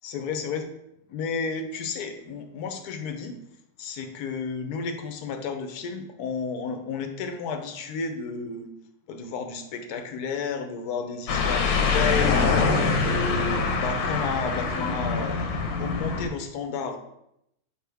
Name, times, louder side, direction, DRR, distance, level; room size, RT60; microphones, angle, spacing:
voice 1, 0.0-0.7 1.1-3.4 3.8-8.7 9.1-15.5 15.8-17.0, left 5 dB, 65° left, 6 dB, 1.2 m, -32 dB
sound 1, 11.3-16.3, left 4 dB, 85° left, 1.5 m, -24 dB
6.4 x 5.0 x 3.4 m, 0.79 s
omnidirectional pair, 1.9 m